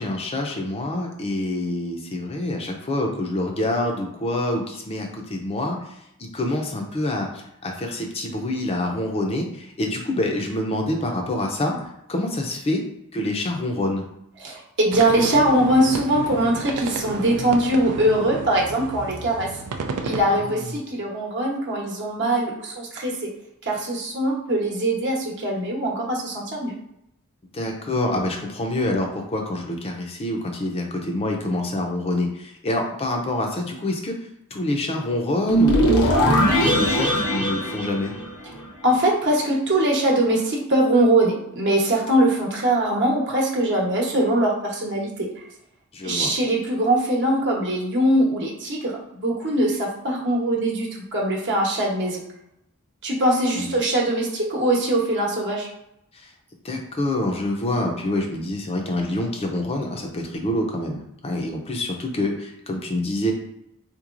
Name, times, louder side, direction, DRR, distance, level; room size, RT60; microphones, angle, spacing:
voice 1, 0.0-5.8 6.2-12.8 13.1-14.0 20.2-20.7 27.5-34.2 34.5-38.1 45.9-46.3 53.5-53.7 56.1-56.3 56.6-63.3, left 1 dB, 25° left, 2 dB, 0.5 m, -26 dB
voice 2, 14.4-19.5 20.0-23.1 23.7-26.7 38.8-45.4 46.0-52.2 53.0-55.7, right 1 dB, 55° right, -2 dB, 0.9 m, -22 dB
sound 1, 14.9-20.2, right 4 dB, 90° right, 0.4 m, -32 dB
sound 2, 35.5-38.7, right 1 dB, 80° left, 0.9 m, -20 dB
3.8 x 3.0 x 2.5 m, 0.81 s
head